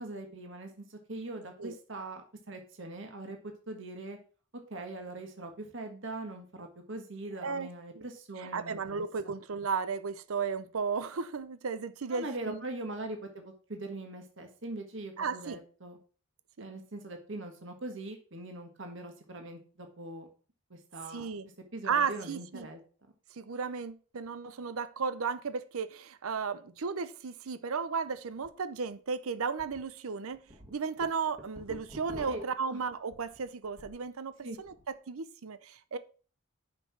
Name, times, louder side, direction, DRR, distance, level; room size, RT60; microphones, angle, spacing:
voice 1, 0.0-3.4 3.7-4.2 4.7-9.3 12.1-16.0 16.6-20.3 20.7-21.3 21.7-22.8 32.3-32.8 34.4-34.6, right 2 dB, 55° right, 1.6 m, -42 dB
voice 2, 7.4-7.7 7.9-8.0 8.4-12.6 15.2-15.6 16.6-16.7 21.1-21.5 21.8-22.7 23.3-30.4 30.7-36.0, right 5 dB, 75° right, 0.6 m, -34 dB
sound 1, 28.3-28.5 28.9-29.0 29.6-29.8 30.2-34.1 34.4-34.8, equal, 25° right, 1.6 m, -48 dB
6.8 x 5.7 x 6.0 m
head